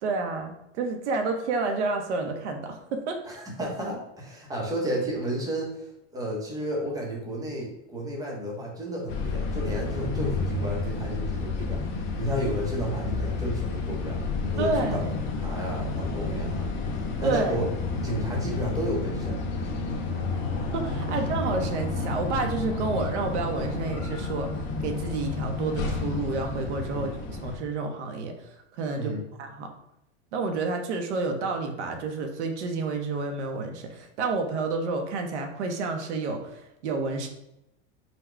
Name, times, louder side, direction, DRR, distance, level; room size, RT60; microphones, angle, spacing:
voice 1, 0.0-3.2 14.6-15.1 17.2-17.6 20.7-28.3 28.7-29.7 30.3-37.3, right 3 dB, 80° right, 4 dB, 0.9 m, -30 dB
voice 2, 3.3-5.9 6.1-11.8 12.2-15.1 15.4-17.6 18.0-19.5 21.1-21.2 26.9-27.1 29.0-29.2, equal, 10° right, -2 dB, 0.8 m, -32 dB
sound 1, 9.1-27.6, left 3 dB, 30° left, 0.6 m, -30 dB
4.1 x 2.3 x 4.4 m, 0.86 s
supercardioid pair, 160°, 34 cm